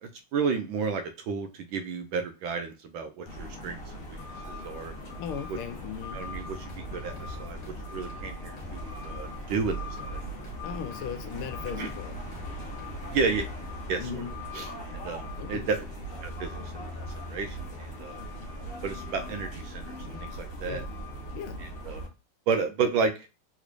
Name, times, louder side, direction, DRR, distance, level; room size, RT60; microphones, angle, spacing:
voice 1, 0.0-4.2 4.5-4.9 6.1-6.6 6.9-7.6 7.9-10.2 11.8-11.9 13.1-13.5 13.9-14.2 14.5-14.7 15.0-15.8 16.2-16.9 17.2-18.2 18.8-19.9 20.2-20.8 21.9-22.0 22.5-23.3, right 5 dB, 75° right, 1.2 m, -31 dB
sound 1, 3.3-22.1, equal, 40° left, 1.0 m, -39 dB
voice 2, 5.2-6.2 10.6-12.2 14.0-14.3 15.4-15.7 20.5-20.8 21.3-21.6, left 8 dB, 85° left, 1.5 m, -37 dB
sound 2, 6.2-13.7, left 2 dB, 20° left, 0.9 m, -46 dB
3.6 x 3.1 x 2.5 m
omnidirectional pair, 2.4 m